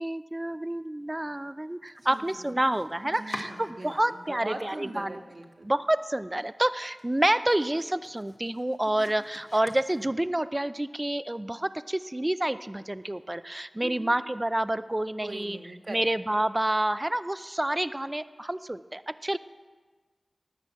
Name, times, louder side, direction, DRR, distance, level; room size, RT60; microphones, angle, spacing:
voice 1, 0.0-5.2 5.6-15.6 15.9-19.4, right 1 dB, 25° right, 13 dB, 0.5 m, -28 dB
Domestic sounds home sounds, 1.8-4.4 4.7-5.4 5.8-5.9 6.3-6.4 6.8-10.5, left 1 dB, 45° left, 1.6 m, -47 dB
voice 2, 2.0-2.6 3.0-5.7 8.8-9.1 13.8-14.1 15.2-16.1, right 2 dB, 55° right, 4 dB, 1.6 m, -41 dB
18.5 x 6.2 x 7.4 m, 1.4 s
cardioid pair, 45°, 0 cm